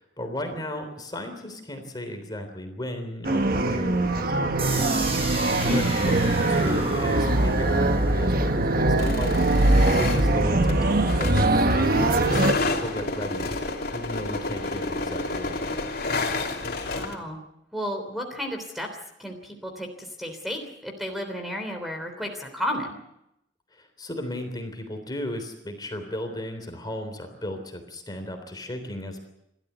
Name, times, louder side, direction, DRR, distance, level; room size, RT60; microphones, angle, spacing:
voice 1, 0.0-5.0 5.7-9.6 10.0-11.6 12.2-13.5 13.9-15.7 23.7-29.2, left 1 dB, 25° left, 6 dB, 3.5 m, -35 dB
sound 1, 3.2-12.5, right 2 dB, 55° right, 1.3 m, -22 dB
sound 2, 4.6-10.5, right 2 dB, 35° right, 6.9 m, -34 dB
sound 3, 9.0-17.2, left 3 dB, 55° left, 3.1 m, -30 dB
voice 2, 16.9-17.4 17.7-18.9 19.2-22.9, equal, ahead, 4 dB, 3.3 m, -32 dB
29.0 x 13.5 x 8.2 m, 0.84 s
head